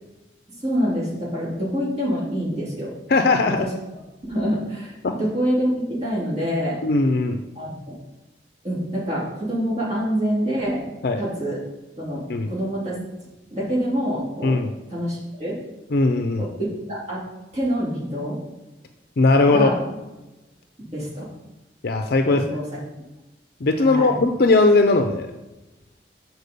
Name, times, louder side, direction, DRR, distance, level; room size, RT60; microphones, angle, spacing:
voice 1, 0.5-2.9 3.6-3.7 4.3-6.8 7.6-7.7 8.6-10.9 11.2-11.6 12.0-13.0 13.5-14.6 14.9-15.6 16.4-16.5 16.9-17.2 17.5-18.4 19.5-19.8 20.9-21.3 22.3-22.8 23.8-24.2, equal, 40° right, -7 dB, 2.5 m, -26 dB
voice 2, 3.1-3.6 5.0-5.1 6.8-7.4 11.0-11.2 12.3-12.5 14.4-14.7 15.9-16.5 19.2-19.7 21.8-22.4 23.6-25.3, left 3 dB, 60° left, 6 dB, 0.5 m, -18 dB
6.6 x 4.5 x 6.7 m, 1.1 s
head